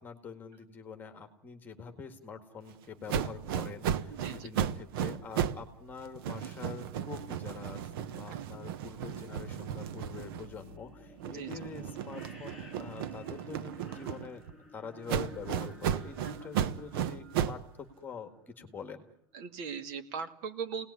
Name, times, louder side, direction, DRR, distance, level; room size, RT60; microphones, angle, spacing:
voice 1, 0.0-14.4 14.7-19.1, left 5 dB, 15° left, 7 dB, 1.9 m, -45 dB
sound 1, 3.1-5.7 6.0-10.8 11.2-14.5 15.1-17.7, right 9 dB, 90° right, 1.1 m, -35 dB
voice 2, 4.1-4.5 8.3-8.6 11.3-11.5 16.2-16.3 19.3-20.9, right 6 dB, 55° right, 9 dB, 2.2 m, -39 dB
sound 2, 8.8-18.6, left 1 dB, 5° right, 2.6 m, -53 dB
29.0 x 19.0 x 9.8 m, 0.75 s
cardioid pair, 180°, 12 cm